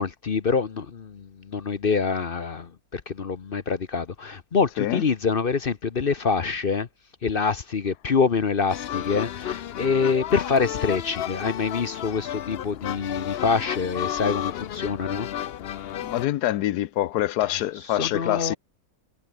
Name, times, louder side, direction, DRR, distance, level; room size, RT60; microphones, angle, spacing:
voice 1, 0.0-6.9 7.2-15.3 17.9-18.6, left 5 dB, 40° left, 1.0 m, -26 dB
sound 1, 8.7-16.3, left 11 dB, 65° left, 0.6 m, -32 dB
voice 2, 16.0-18.6, left 14 dB, 80° left, 1.2 m, -25 dB
omnidirectional pair, 1.7 m